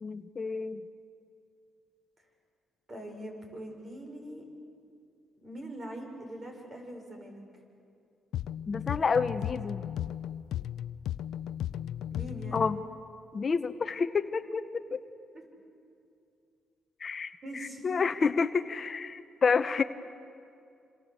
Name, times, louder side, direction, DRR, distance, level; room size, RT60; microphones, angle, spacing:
voice 1, 0.0-0.8 8.7-9.8 12.5-12.8 13.3-14.7 14.9-15.0 17.0-19.8, left 5 dB, 40° left, 11 dB, 0.9 m, -29 dB
voice 2, 2.9-4.4 5.4-7.4 12.1-12.6 15.3-15.4 17.4-18.1, right 1 dB, 35° right, 3 dB, 6.3 m, -42 dB
sound 1, 8.3-12.9, left 11 dB, 80° left, 0.6 m, -35 dB
27.0 x 27.0 x 8.1 m, 2.5 s
cardioid pair, 90°, 0 cm